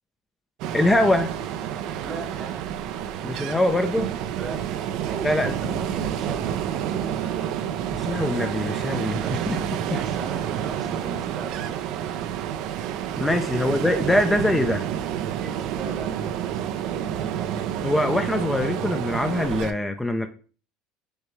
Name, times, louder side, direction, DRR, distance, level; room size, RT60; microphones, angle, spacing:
Ocean, 0.6-19.7, right 10 dB, 65° right, 0.4 m, -29 dB
voice 1, 0.7-1.3 3.2-4.1 5.2-5.5 8.0-9.2 9.5-9.6 9.8-10.0 13.2-14.9 17.8-20.3, left 1 dB, 10° left, 0.4 m, -23 dB
voice 2, 2.0-2.6 4.4-7.9 8.7-11.7 15.2-17.5, right 3 dB, 35° right, 0.9 m, -40 dB
6.3 x 2.2 x 3.1 m
supercardioid pair, 110°, 0 cm